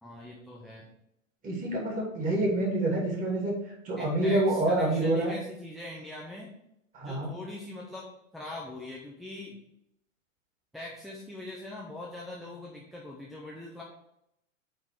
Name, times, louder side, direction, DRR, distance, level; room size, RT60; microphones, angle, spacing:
voice 1, 0.0-0.9 4.0-6.5 7.0-9.6 10.7-13.8, left 1 dB, ahead, -4 dB, 0.3 m, -42 dB
voice 2, 1.4-3.5 3.8-5.4 6.9-7.3, right 1 dB, 20° right, -2 dB, 2.8 m, -27 dB
8.8 x 4.0 x 4.6 m, 0.79 s
hypercardioid pair, 110°, 40 cm